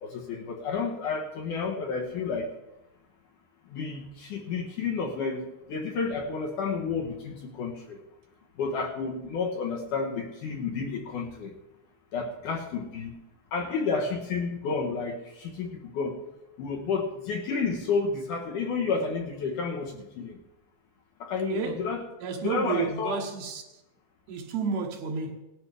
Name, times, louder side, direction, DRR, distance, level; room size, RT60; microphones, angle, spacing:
voice 1, 0.0-2.5 3.7-8.0 8.6-11.6 12.1-13.2 13.5-16.2 16.6-20.4 21.2-22.0 22.4-23.2, left 4 dB, 65° left, 2.5 m, -31 dB
voice 2, 21.5-21.9 22.2-23.6 24.3-25.4, right 5 dB, 75° right, 3.1 m, -31 dB
18.5 x 11.0 x 3.5 m
omnidirectional pair, 4.6 m